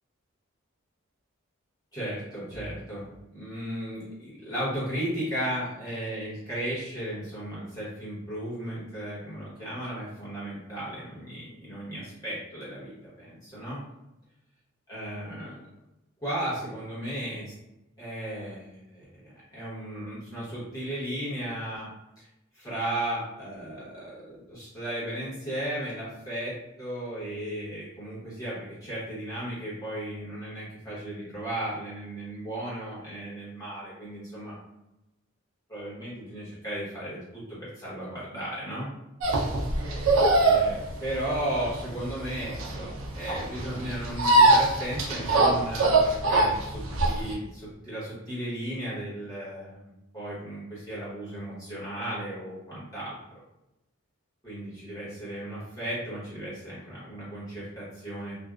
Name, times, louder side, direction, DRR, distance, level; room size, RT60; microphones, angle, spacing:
voice 1, 1.9-3.1 3.3-13.8 14.9-15.6 16.2-17.5 18.0-21.9 22.2-22.3 22.5-34.6 35.7-38.9 40.4-53.2 54.4-58.3, right 1 dB, 20° left, -10 dB, 1.0 m, -35 dB
sound 1, 39.2-47.3, right 2 dB, 70° right, 0.4 m, -22 dB
2.5 x 2.1 x 2.3 m, 0.93 s
head